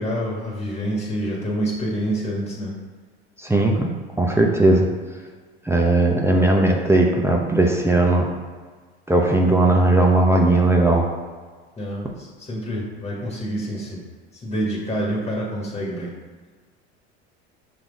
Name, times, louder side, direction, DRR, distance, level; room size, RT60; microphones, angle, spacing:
voice 1, 0.0-2.7 11.8-14.0 14.3-16.1, equal, 20° left, -4 dB, 1.7 m, -27 dB
voice 2, 3.4-3.9 4.2-4.9 5.7-8.3 9.1-11.1, right 2 dB, 10° right, 0 dB, 0.7 m, -17 dB
5.9 x 4.1 x 4.0 m, 1.5 s
hypercardioid pair, 90°, 33 cm